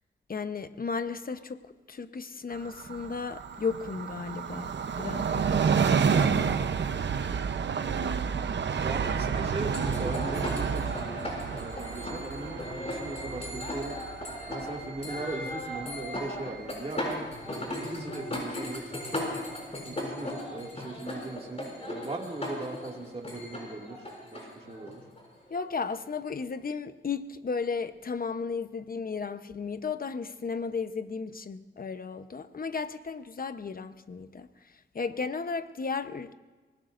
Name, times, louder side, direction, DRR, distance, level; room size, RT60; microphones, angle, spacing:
voice 1, 0.3-6.6 7.9-8.0 25.5-36.3, left 5 dB, 45° left, 0.9 m, -35 dB
Train, 2.5-15.8 16.2-16.3, right 6 dB, 65° right, 0.8 m, -30 dB
voice 2, 8.3-14.0 14.5-19.3 19.9-25.0, right 2 dB, 30° right, 2.3 m, -39 dB
sound 1, 9.7-26.0, left 1 dB, 30° left, 7.0 m, -37 dB
24.5 x 20.0 x 2.6 m
cardioid pair, 75°, 20 cm